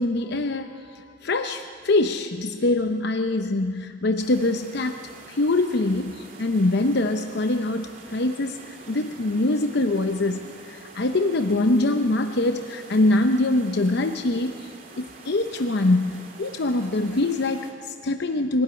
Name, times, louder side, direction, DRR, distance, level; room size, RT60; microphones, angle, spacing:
voice 1, 0.0-5.0 5.3-18.6, left 2 dB, 60° left, 7 dB, 0.7 m, -24 dB
sound 1, 4.2-17.7, right 3 dB, 50° right, 3.0 m, -46 dB
22.0 x 13.0 x 9.8 m, 2.2 s
head